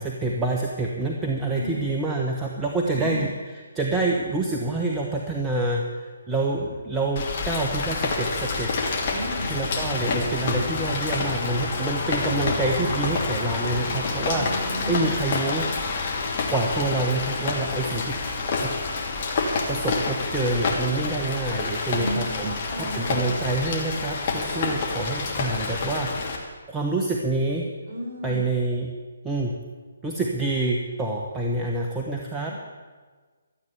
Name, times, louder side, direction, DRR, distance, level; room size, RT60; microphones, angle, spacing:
voice 1, 0.0-8.7 9.5-15.7 16.5-18.2 18.6-18.7 19.7-27.7 28.2-28.9 29.2-29.5 30.0-32.5, right 2 dB, 10° right, -1 dB, 1.2 m, -27 dB
voice 2, 1.5-1.9 2.9-3.3 9.1-9.6 14.3-15.1 21.9-23.5 24.5-24.8 27.9-28.4 32.5-32.6, right 1 dB, 35° right, -4 dB, 5.3 m, -34 dB
Rain, 7.2-26.4, left 4 dB, 40° left, 2.6 m, -28 dB
13.5 x 8.6 x 8.3 m, 1.4 s
figure-of-eight pair, 140°, 0 cm